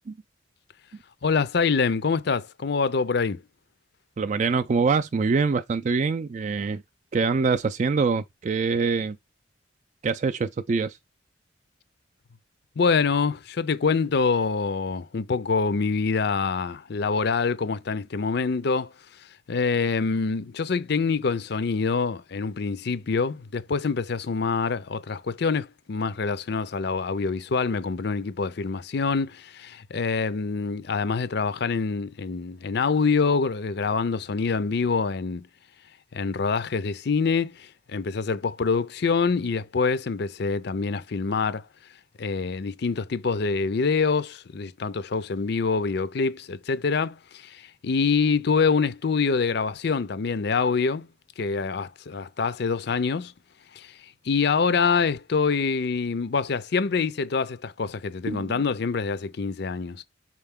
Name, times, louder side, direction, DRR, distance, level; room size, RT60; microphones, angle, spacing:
voice 1, 1.2-3.4 12.8-18.9 19.5-35.5 36.1-41.6 42.2-51.1 51.4-53.3 53.7-53.9 54.3-60.0, left 5 dB, 60° left, 0.5 m, -25 dB
voice 2, 4.2-6.8 7.1-9.2 10.0-11.0 58.3-58.5, right 4 dB, 40° right, 0.3 m, -24 dB
6.2 x 4.5 x 3.6 m
head